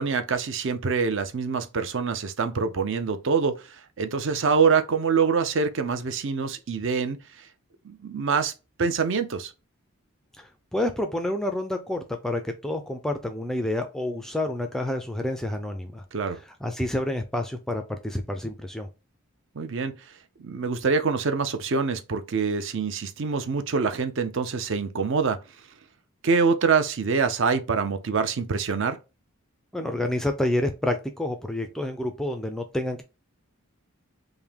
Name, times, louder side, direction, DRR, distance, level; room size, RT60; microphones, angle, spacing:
voice 1, 0.0-7.5 7.8-8.5 8.8-9.5 16.1-16.4 19.5-19.9 20.4-25.4 26.2-29.0, right 5 dB, 55° right, 0.5 m, -25 dB
voice 2, 10.4-16.0 16.6-18.9 29.7-33.0, left 1 dB, ahead, 0.3 m, -29 dB
3.6 x 2.6 x 3.4 m
head